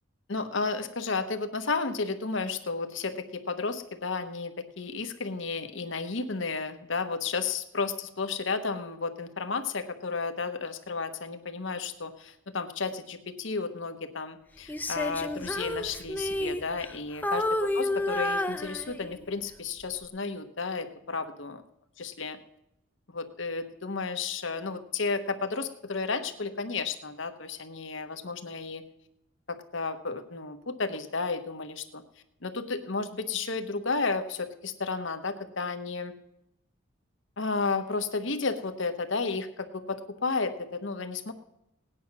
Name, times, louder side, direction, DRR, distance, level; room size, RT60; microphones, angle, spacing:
voice 1, 0.3-17.4 17.7-21.6 22.0-22.4 23.1-28.8 29.5-32.0 32.4-36.1 37.4-41.3, left 4 dB, 65° left, 8 dB, 1.1 m, -32 dB
Female singing, 14.7-17.0 17.2-19.3 19.8-20.0, left 1 dB, 10° left, 0.6 m, -30 dB
18.0 x 9.4 x 6.0 m, 0.85 s
head